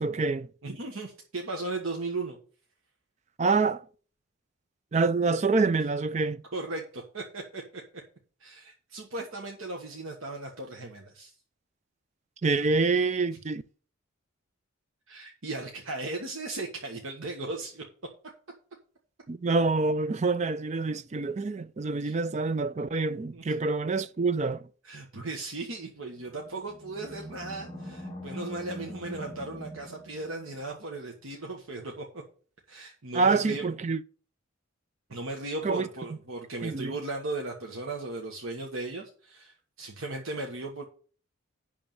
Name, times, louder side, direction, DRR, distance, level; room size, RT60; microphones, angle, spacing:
voice 1, 0.0-0.5 3.4-3.8 4.9-6.4 12.4-13.6 19.3-24.7 33.1-34.0 35.6-35.9 36.6-37.0, right 3 dB, 30° right, 0.4 m, -26 dB
voice 2, 0.6-2.4 6.5-7.8 8.4-11.3 15.1-17.8 22.0-22.2 23.3-23.6 24.8-32.2 32.7-33.7 35.1-40.8, right 2 dB, 75° right, 1.3 m, -37 dB
Animal, 26.3-30.7, equal, 20° left, 1.4 m, -42 dB
10.5 x 3.6 x 7.4 m
head